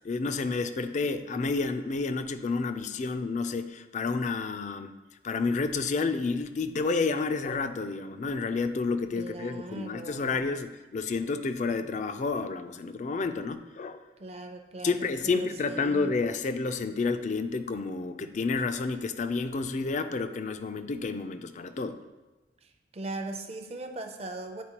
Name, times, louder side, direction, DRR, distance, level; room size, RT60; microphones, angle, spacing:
voice 1, 0.0-5.0 5.2-14.0 14.8-22.0, left 4 dB, 40° left, 10 dB, 0.4 m, -30 dB
voice 2, 9.2-10.4 14.2-16.1 22.6-24.6, right 2 dB, 35° right, 5 dB, 0.6 m, -39 dB
10.0 x 4.4 x 2.9 m, 1.1 s
head